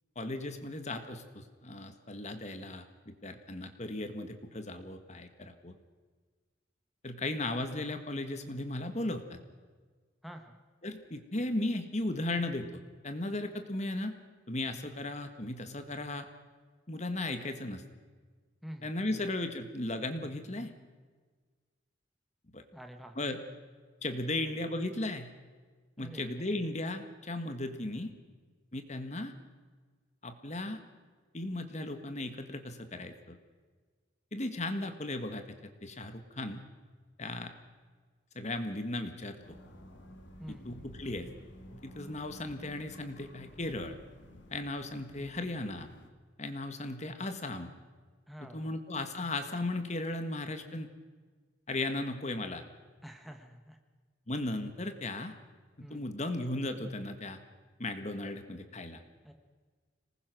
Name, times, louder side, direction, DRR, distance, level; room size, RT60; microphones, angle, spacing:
voice 1, 0.2-5.8 7.0-9.4 10.8-14.1 14.5-16.3 16.9-17.8 18.8-20.7 22.5-22.6 23.2-23.4 24.0-25.3 26.0-28.1 28.7-29.3 30.2-30.8 31.3-33.4 34.3-36.6 37.2-37.5 38.4-39.4 40.5-41.3 41.7-44.0 44.5-45.9 46.4-47.7 48.4-50.9 51.7-52.6 54.3-55.3 55.8-57.4 57.8-59.0, left 2 dB, 35° left, 8 dB, 1.7 m, -36 dB
voice 2, 10.2-10.6 18.6-19.3 22.7-23.2 24.3-24.6 26.0-26.5 40.4-40.9 48.3-48.8 53.0-53.8 55.8-56.1 59.2-59.3, equal, ahead, 4 dB, 1.5 m, -48 dB
sound 1, 39.4-46.1, equal, 65° left, 2.6 m, -53 dB
26.0 x 20.0 x 6.3 m, 1.5 s
head